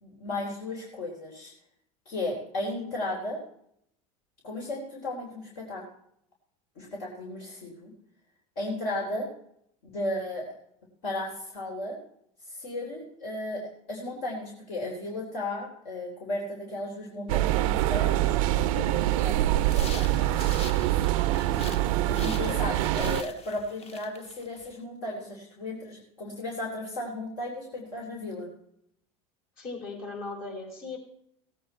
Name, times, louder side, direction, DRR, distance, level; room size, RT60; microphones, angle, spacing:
voice 1, 0.0-1.5 2.1-3.4 4.4-5.8 6.8-7.9 8.6-9.3 9.9-10.6 11.0-12.0 12.5-20.4 22.1-28.5, left 2 dB, 70° left, -2 dB, 3.6 m, -35 dB
sound 1, 17.3-23.2, right 15 dB, 70° right, 0.5 m, -25 dB
sound 2, 19.6-21.9 22.1-24.7, left 4 dB, 35° left, 1.1 m, -44 dB
voice 2, 21.5-21.8 22.3-22.6 29.6-31.0, left 3 dB, 55° left, 0 dB, 4.7 m, -38 dB
17.5 x 8.6 x 4.4 m, 0.72 s
hypercardioid pair, 90°, 18 cm